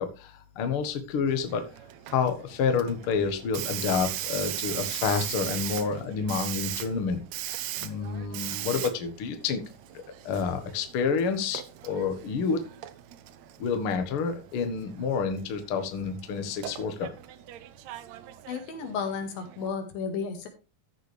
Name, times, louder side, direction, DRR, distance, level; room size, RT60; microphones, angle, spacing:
voice 1, 0.0-1.7 2.1-7.2 7.8-9.6 10.2-12.6 13.6-17.1, left 5 dB, 55° left, 7 dB, 1.7 m, -29 dB
Hiss, 1.3-19.7, right 14 dB, 85° right, 1.5 m, -39 dB
voice 2, 18.5-20.5, left 5 dB, 85° left, 5 dB, 3.6 m, -33 dB
14.5 x 6.8 x 3.3 m, 0.30 s
omnidirectional pair, 4.0 m